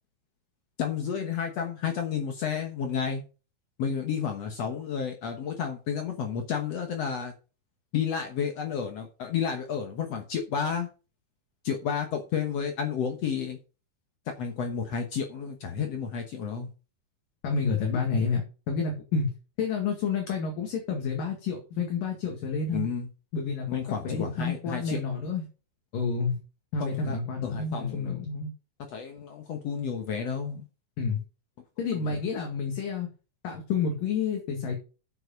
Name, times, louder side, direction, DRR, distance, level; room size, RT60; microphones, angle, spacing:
voice 1, 0.8-3.2 3.8-7.3 7.9-10.9 11.6-13.6 14.3-16.7 22.7-23.1 23.7-25.0 26.8-27.2 27.4-28.1 28.8-30.6 31.9-32.2, left 7 dB, 85° left, 4 dB, 1.4 m, -31 dB
voice 2, 17.4-19.3 19.6-22.8 23.3-25.4 25.9-26.4 26.7-28.5 31.0-31.2 31.8-33.1 33.4-34.7, left 5 dB, 60° left, 2 dB, 3.4 m, -29 dB
8.1 x 7.8 x 5.3 m, 0.34 s
omnidirectional pair, 4.8 m